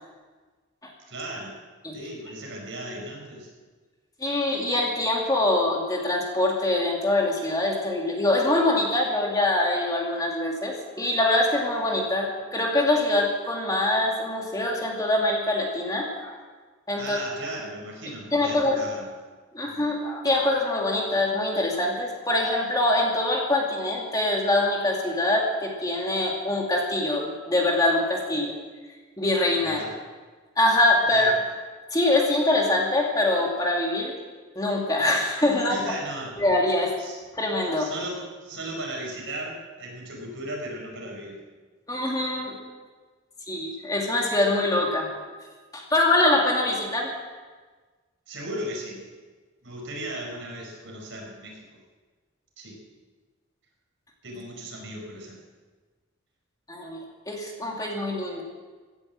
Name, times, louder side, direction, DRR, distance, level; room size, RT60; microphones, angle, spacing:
voice 1, 1.1-1.6 1.9-3.5 17.0-19.1 19.7-20.0 29.6-29.9 31.0-31.4 35.7-36.3 37.0-37.2 37.8-41.4 48.3-49.0 49.6-51.6 52.6-52.8 54.2-55.4, right 1 dB, 65° right, -1 dB, 5.0 m, -36 dB
voice 2, 4.2-16.4 16.9-17.2 18.3-18.8 19.5-28.5 29.2-29.8 30.6-31.3 31.9-34.1 34.6-35.8 36.4-36.9 37.3-37.9 41.9-42.6 43.5-45.1 45.7-47.1 56.7-58.4, left 2 dB, 20° left, -1 dB, 2.3 m, -24 dB
16.5 x 10.5 x 7.5 m, 1.4 s
head